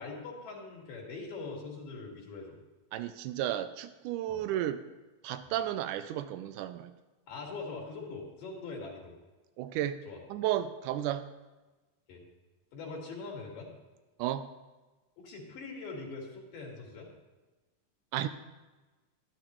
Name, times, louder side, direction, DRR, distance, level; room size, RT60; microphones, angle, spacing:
voice 1, 0.0-2.6 4.3-4.4 7.3-9.1 10.1-10.2 12.1-12.2 12.7-13.7 15.2-17.1, left 3 dB, 75° left, -1 dB, 3.6 m, -42 dB
voice 2, 2.9-4.8 5.2-6.9 9.6-10.0 10.3-11.3 14.2-14.5 18.1-18.3, right 12 dB, 80° right, 11 dB, 1.9 m, -33 dB
12.5 x 12.0 x 3.0 m, 1.2 s
omnidirectional pair, 4.0 m